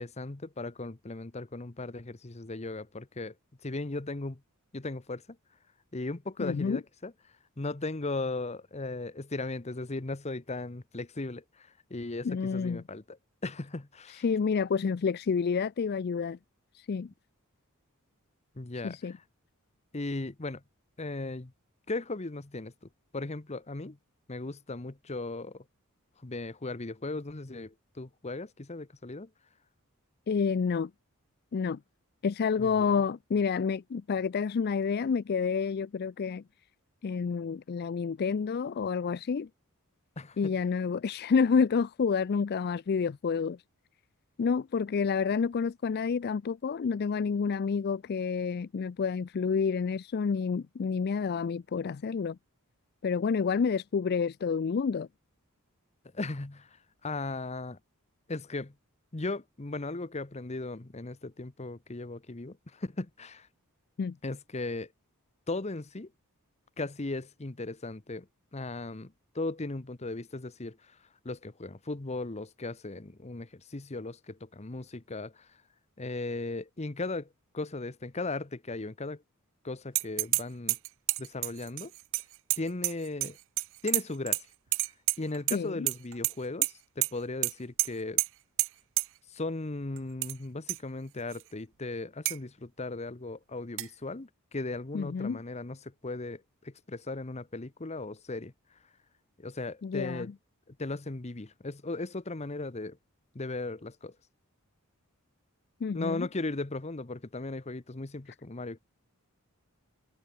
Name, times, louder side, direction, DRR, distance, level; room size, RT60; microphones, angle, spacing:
voice 1, 0.0-3.3 3.6-4.4 4.7-5.2 5.9-7.1 7.6-13.2 13.4-14.2 18.6-19.1 19.9-20.6 21.0-21.5 21.9-22.7 23.1-24.0 24.3-25.6 26.2-29.3 32.6-32.8 40.2-40.5 56.1-56.7 57.0-57.8 58.3-58.7 59.1-63.5 64.2-64.9 65.5-66.1 66.8-68.3 68.5-70.8 71.2-75.5 76.0-77.3 77.5-79.2 79.6-80.8 81.2-81.9 82.6-83.4 83.8-84.4 85.2-88.2 89.3-98.5 99.4-100.3 100.7-103.0 103.3-104.1 105.9-108.8, left 2 dB, 30° left, 1.0 m, -37 dB
voice 2, 6.4-6.8 12.2-12.8 14.1-16.4 16.7-17.1 18.8-19.1 30.3-30.9 31.5-31.8 32.2-36.4 37.0-39.5 40.4-43.6 44.4-52.4 53.0-55.1 64.0-64.2 85.5-85.9 94.9-95.4 99.8-100.3 105.8-106.3, left 5 dB, 45° left, 0.4 m, -29 dB
sound 1, 79.9-80.4 80.7-83.3 83.6-84.4 84.7-85.6 85.9-86.3 86.6-86.7 87.0-87.1 87.4-87.5 87.8-87.9 88.2-88.3 88.6-88.7 89.0-89.1 90.0-90.3 90.7-90.8 91.3-91.4 92.3-92.4 93.8-93.9, right 21 dB, 60° right, 0.5 m, -28 dB
head